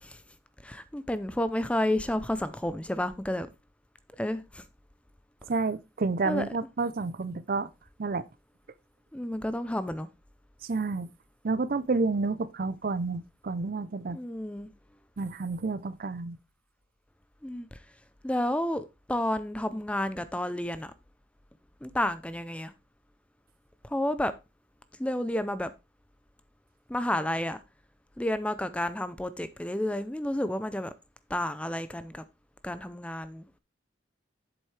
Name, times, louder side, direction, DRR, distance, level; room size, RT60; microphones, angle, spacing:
voice 1, 0.6-3.5 4.2-4.6 6.2-6.5 9.1-10.1 14.1-14.7 17.4-17.8 18.2-20.9 21.8-22.7 23.8-24.3 25.0-25.7 26.9-27.6 28.2-30.9 31.3-32.2 32.6-33.4, left 1 dB, 5° left, 0.4 m, -31 dB
voice 2, 5.5-7.7 8.0-8.3 10.6-11.1 11.4-14.2 15.2-16.4, right 3 dB, 50° right, 0.5 m, -30 dB
8.1 x 7.3 x 3.2 m
head